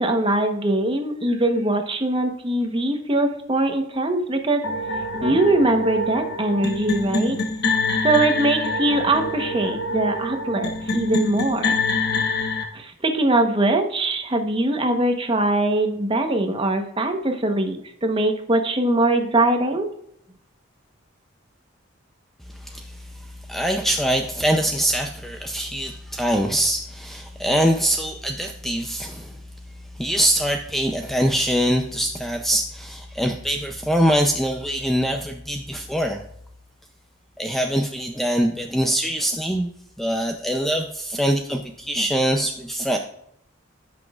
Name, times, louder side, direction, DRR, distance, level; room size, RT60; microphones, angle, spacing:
voice 1, 0.0-4.6 5.2-7.4 8.0-11.8 12.7-19.9, right 2 dB, 25° right, 5 dB, 1.0 m, -22 dB
sound 1, 4.6-12.6, left 2 dB, 55° left, 1.1 m, -25 dB
voice 2, 22.6-23.0 23.5-29.4 30.0-36.2 37.4-39.7 40.0-43.0, equal, ahead, 3 dB, 0.5 m, -23 dB
15.5 x 6.1 x 2.4 m, 0.73 s
head